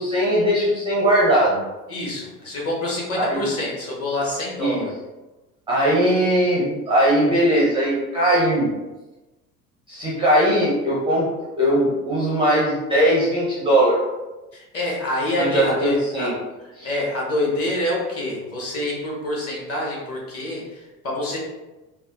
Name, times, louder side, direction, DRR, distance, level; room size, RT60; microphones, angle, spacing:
voice 1, 0.0-1.6 3.2-3.6 4.6-4.8 5.7-8.7 9.9-11.2 11.6-14.0 15.3-16.3 16.8-16.9, right 1 dB, 10° right, -6 dB, 0.5 m, -19 dB
voice 2, 1.9-4.9 14.5-16.3 16.8-21.4, left 1 dB, 30° left, -3 dB, 1.0 m, -26 dB
3.4 x 2.1 x 2.3 m, 1.1 s
figure-of-eight pair, 65°, 49 cm